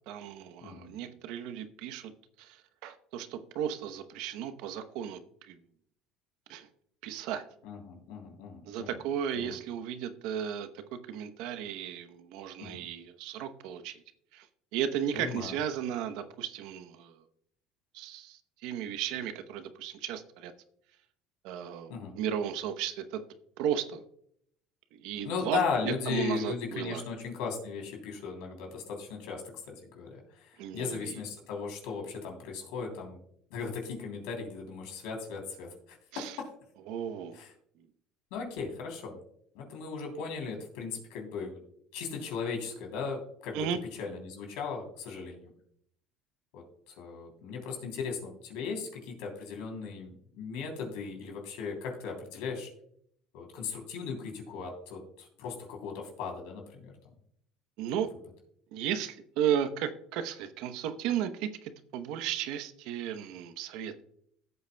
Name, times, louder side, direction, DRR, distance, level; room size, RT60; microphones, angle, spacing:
voice 1, 0.1-2.1 2.4-5.6 6.5-6.7 7.0-7.4 8.6-14.0 14.3-14.5 14.7-17.2 17.9-20.5 21.4-23.2 23.6-24.0 24.9-25.6 25.8-27.0 30.6-31.2 36.1-36.4 36.9-37.4 43.5-43.8 57.8-58.1 58.7-63.9, right 9 dB, 70° right, 10 dB, 0.8 m, -35 dB
voice 2, 0.6-0.9 7.6-9.0 9.3-9.6 12.6-12.8 15.1-15.5 21.9-22.1 25.2-29.4 29.9-30.1 30.4-33.2 33.5-36.5 37.3-37.5 38.3-39.2 39.5-41.6 41.9-43.7 44.0-45.5 46.5-52.7 53.3-56.9, left 5 dB, 80° left, 1 dB, 3.2 m, -37 dB
16.5 x 8.0 x 2.3 m, 0.69 s
cardioid pair, 130°, 0 cm